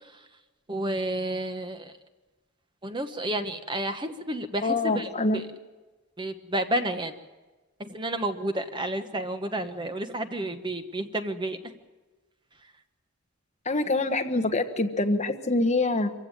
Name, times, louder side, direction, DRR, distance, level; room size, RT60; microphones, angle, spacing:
voice 1, 0.7-1.9 2.8-5.4 6.2-7.1 7.8-11.7, right 1 dB, 20° right, 7 dB, 1.1 m, -31 dB
voice 2, 4.6-5.4 13.6-16.1, left 2 dB, 30° left, 6 dB, 1.3 m, -25 dB
25.0 x 15.5 x 8.9 m, 1.2 s
head